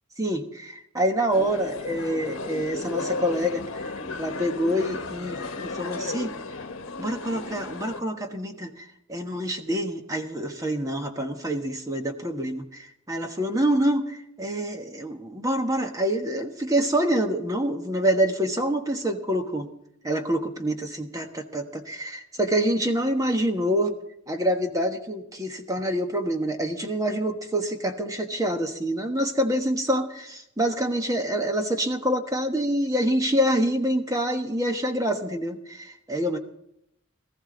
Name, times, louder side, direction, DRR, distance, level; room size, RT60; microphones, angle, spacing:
voice 1, 0.2-3.8 4.2-6.3 7.0-19.7 20.0-23.9 24.3-36.4, equal, 15° right, 5 dB, 1.3 m, -26 dB
sound 1, 1.3-8.0, left 3 dB, 60° left, 1.4 m, -34 dB
18.5 x 14.5 x 3.9 m, 0.77 s
head